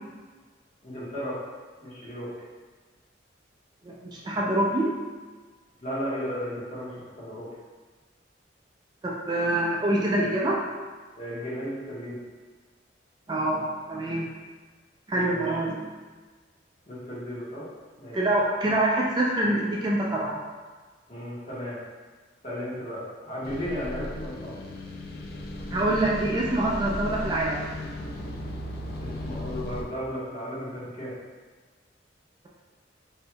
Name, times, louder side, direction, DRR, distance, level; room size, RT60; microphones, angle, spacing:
voice 1, 0.8-1.4 1.8-2.3 5.8-7.5 11.1-12.2 15.3-15.4 16.9-17.6 18.0-18.3 21.1-21.8 22.4-24.5 29.0-31.1, equal, 40° left, -9 dB, 1.1 m, -34 dB
voice 2, 3.8-5.0 9.0-10.7 13.3-14.3 15.1-15.9 18.1-20.4 25.7-27.6, right 1 dB, 25° right, -4 dB, 0.3 m, -25 dB
sound 1, 23.4-29.8, left 1 dB, 55° left, 0.4 m, -35 dB
4.4 x 2.7 x 2.2 m, 1.4 s
head